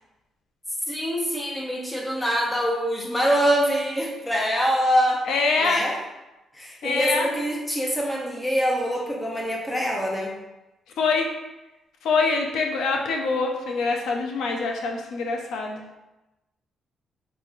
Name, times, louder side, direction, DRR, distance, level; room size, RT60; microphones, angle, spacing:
voice 1, 0.9-5.2 5.6-5.9 6.5-10.3, equal, 10° left, -1 dB, 0.9 m, -24 dB
voice 2, 5.3-5.9 6.8-7.3 11.0-11.3 12.0-15.8, left 4 dB, 75° left, 2 dB, 0.5 m, -24 dB
4.8 x 3.0 x 2.4 m, 1.0 s
cardioid pair, 90°, 0 cm